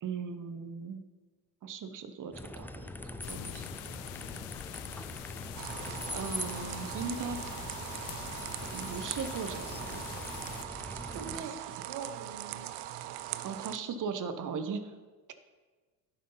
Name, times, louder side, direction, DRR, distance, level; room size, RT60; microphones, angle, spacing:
voice 1, 0.0-1.0 1.6-3.7 6.1-7.4 8.7-10.4 11.1-11.3 13.4-14.9, right 5 dB, 40° right, 9 dB, 1.0 m, -38 dB
sound 1, 2.3-11.4, left 2 dB, 5° left, 0.3 m, -43 dB
sound 2, 3.2-10.6, left 15 dB, 75° left, 0.6 m, -45 dB
sound 3, 5.5-13.8, right 14 dB, 55° right, 0.6 m, -41 dB
voice 2, 11.1-12.7, right 6 dB, 80° right, 5 dB, 1.4 m, -43 dB
11.0 x 5.7 x 3.9 m, 1.4 s
hypercardioid pair, 75°, 48 cm